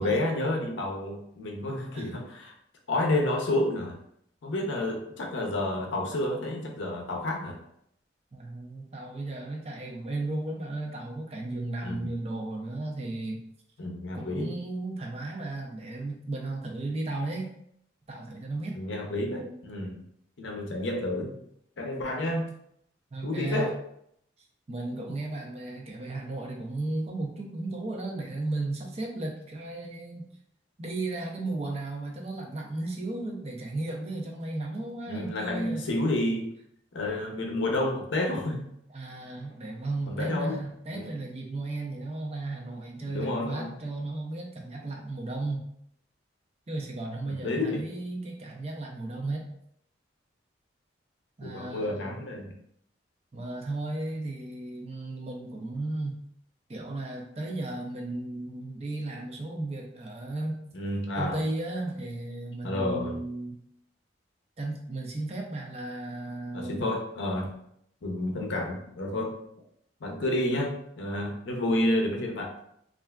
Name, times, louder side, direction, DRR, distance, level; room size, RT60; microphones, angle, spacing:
voice 1, 0.0-2.5 2.9-4.0 4.4-7.6 11.8-12.0 13.8-14.5 18.7-20.0 20.4-21.4 21.8-22.5 23.2-23.7 35.1-36.5 36.9-38.6 40.1-40.6 40.9-41.1 43.0-43.8 47.4-47.9 51.4-52.5 60.7-61.4 62.6-63.2 66.5-67.5 68.0-69.4 70.0-72.5, left 1 dB, 75° left, 1 dB, 0.6 m, -30 dB
voice 2, 8.3-13.4 14.1-17.5 18.1-18.8 23.1-23.7 24.7-30.3 30.8-35.9 38.9-45.7 46.7-49.5 51.4-52.2 53.3-56.3 56.7-60.6 61.2-63.6 64.6-66.9, right 2 dB, 35° right, 0 dB, 0.5 m, -35 dB
3.3 x 2.5 x 2.2 m, 0.73 s
head